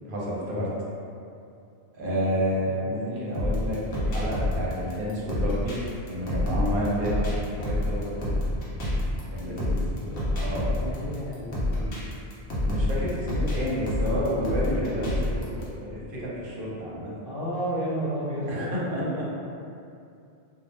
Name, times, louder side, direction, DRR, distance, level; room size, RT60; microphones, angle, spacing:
voice 1, 0.1-0.7 2.0-5.8 6.0-8.4 9.3-9.8 10.3-10.8 12.6-17.1 18.5-19.2, equal, 60° right, -6 dB, 0.7 m, -30 dB
voice 2, 2.1-3.6 9.4-10.3 10.7-12.0 17.2-19.2, equal, 15° left, -12 dB, 0.5 m, -34 dB
sound 1, 3.3-15.6, left 1 dB, 90° left, 1.0 m, -28 dB
2.4 x 2.0 x 3.0 m, 2.5 s
omnidirectional pair, 1.1 m